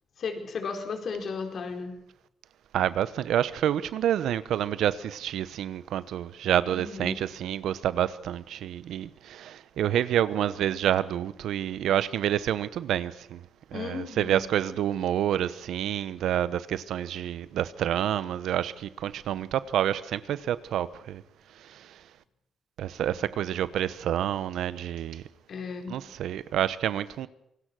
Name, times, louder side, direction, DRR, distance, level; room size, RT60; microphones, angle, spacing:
voice 1, 0.2-1.9 6.7-7.2 13.7-14.4 14.7-14.8 25.5-26.0, left 5 dB, 55° left, 4.5 m, -35 dB
voice 2, 2.7-13.4 13.7-21.2 21.6-21.9 22.8-25.2 25.9-27.3, right 11 dB, 75° right, 0.9 m, -28 dB
26.5 x 18.0 x 6.3 m
cardioid pair, 90°, 0 cm